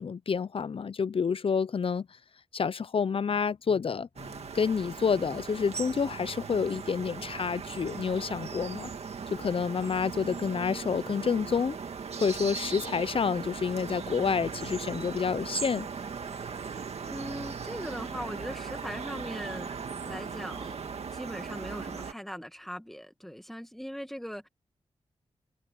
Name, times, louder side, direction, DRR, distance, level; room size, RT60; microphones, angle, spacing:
voice 1, 0.0-2.1 2.5-8.9 9.3-11.8 12.2-15.9, left 6 dB, 60° left, 0.7 m, -29 dB
sound 1, 4.2-22.1, right 5 dB, 80° right, 1.9 m, -38 dB
voice 2, 17.1-19.7 20.0-24.5, equal, ahead, 2.2 m, -40 dB
wide cardioid pair, 70°, 11 cm